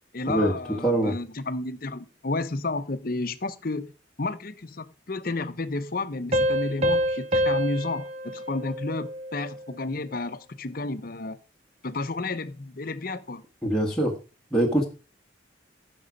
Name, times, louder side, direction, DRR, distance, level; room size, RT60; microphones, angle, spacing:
voice 1, 0.1-3.9 4.2-11.4 11.8-13.4, left 2 dB, 50° left, 0.8 m, -31 dB
voice 2, 0.8-1.1 13.6-14.1 14.5-14.8, right 1 dB, 5° left, 1.6 m, -23 dB
sound 1, 6.3-9.6, equal, 35° right, 0.9 m, -27 dB
11.0 x 6.2 x 5.1 m
head